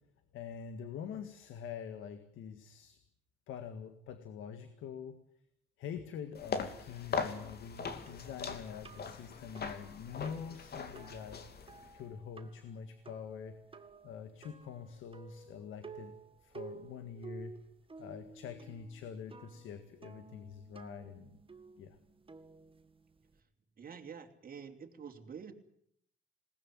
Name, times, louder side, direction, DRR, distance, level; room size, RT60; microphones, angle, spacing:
voice 1, 0.3-3.0 3.5-5.2 5.8-11.4 11.9-13.6 14.0-16.1 16.4-17.5 18.0-21.3 21.8-22.0, left 7 dB, 85° left, 9 dB, 1.9 m, -45 dB
sound 1, 6.3-12.0, left 5 dB, 55° left, 2.8 m, -40 dB
sound 2, 8.1-23.4, right 4 dB, 25° right, 1.8 m, -54 dB
voice 2, 23.8-25.5, right 6 dB, 45° right, 4 dB, 3.2 m, -47 dB
20.5 x 19.0 x 9.4 m, 0.69 s
cardioid pair, 90°, 20 cm